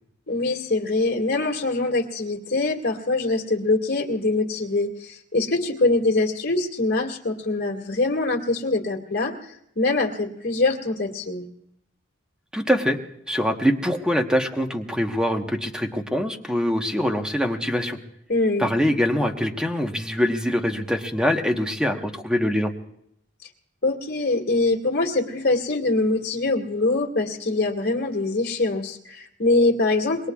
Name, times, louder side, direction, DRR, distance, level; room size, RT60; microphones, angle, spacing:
voice 1, 0.3-11.5 18.3-18.7 23.8-30.3, left 2 dB, 55° left, 1 dB, 2.1 m, -23 dB
voice 2, 12.5-13.0 13.3-18.0 18.6-22.7, equal, 5° right, 4 dB, 1.1 m, -23 dB
27.0 x 22.0 x 2.4 m, 0.78 s
head